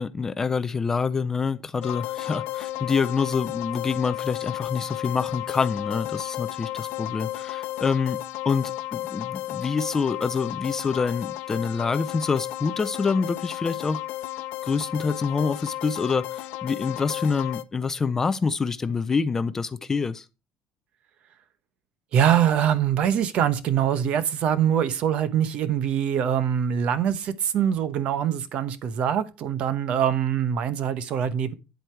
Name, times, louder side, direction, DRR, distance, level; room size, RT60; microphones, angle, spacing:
voice 1, 0.0-8.2 8.5-14.0 14.6-20.2, left 5 dB, 15° left, 0.4 m, -26 dB
sound 1, 1.8-17.6, left 15 dB, 70° left, 0.6 m, -33 dB
voice 2, 22.1-31.5, right 9 dB, 45° right, 0.9 m, -23 dB
9.3 x 7.9 x 4.5 m
cardioid pair, 175°, 3 cm